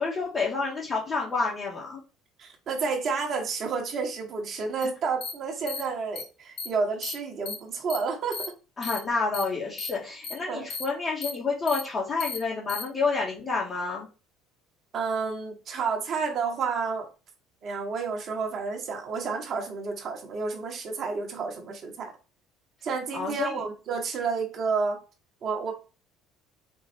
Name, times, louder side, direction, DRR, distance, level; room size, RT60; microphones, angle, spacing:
voice 1, 0.0-2.0 4.8-4.9 8.8-14.1 23.1-23.6, left 4 dB, 30° left, 1.5 m, -29 dB
voice 2, 2.4-8.4 10.5-10.7 14.9-17.1 17.6-22.1 22.8-25.0 25.4-25.7, right 5 dB, 50° right, 1.1 m, -30 dB
sound 1, 4.8-4.9 5.2-5.3 5.7-5.8 6.2-6.3 6.6-6.7 7.0-7.1 7.5-7.6 7.9-8.0 8.3-8.5 8.8-9.0 9.3-9.4 9.8-9.9 10.2-10.3 10.7-10.8 11.2-11.3 11.7-11.8 12.2-12.4 12.7-12.8, left 4 dB, 55° left, 1.2 m, -33 dB
4.6 x 2.3 x 4.3 m
hypercardioid pair, 65°, 0 cm